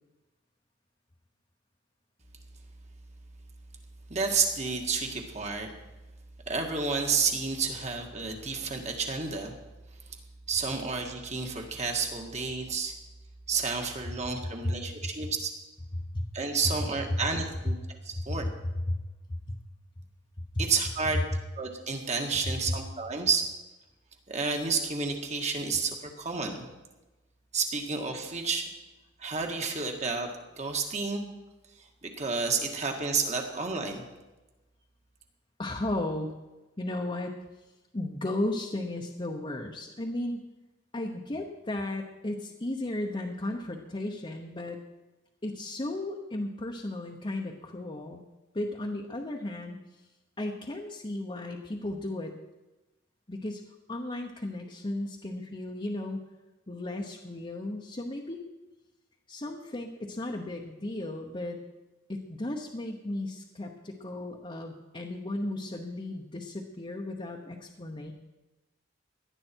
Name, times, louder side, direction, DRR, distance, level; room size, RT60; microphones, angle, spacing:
voice 1, 4.1-5.7 6.5-9.5 10.5-12.9 13.5-15.5 16.3-17.8 18.1-18.5 20.6-21.2 21.6-23.5 24.3-26.7 27.5-28.7 29.2-30.3 30.6-31.3 31.8-34.0, right 4 dB, 40° right, 3 dB, 1.8 m, -30 dB
voice 2, 16.8-17.2 18.1-18.5 18.9-19.0 19.3-19.6 22.4-22.8 35.6-36.3 36.8-37.3 37.9-40.4 40.9-44.8 45.4-48.2 48.5-49.8 50.4-52.3 53.3-53.6 53.9-56.2 56.7-58.4 59.3-61.6 62.1-68.1, left 1 dB, 25° left, 0 dB, 1.0 m, -34 dB
18.0 x 11.5 x 4.5 m, 1.1 s
head